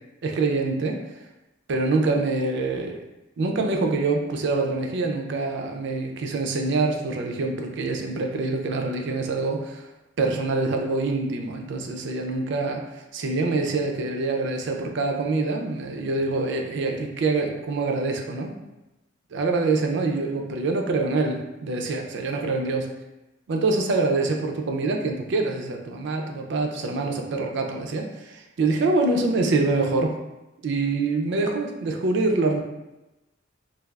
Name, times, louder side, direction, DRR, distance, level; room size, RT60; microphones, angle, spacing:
voice 1, 0.2-1.0 1.7-3.0 3.4-9.9 10.2-18.5 19.3-22.9 23.5-30.1 30.6-32.6, right 3 dB, 65° right, 3 dB, 0.4 m, -25 dB
3.3 x 2.3 x 2.3 m, 0.99 s
head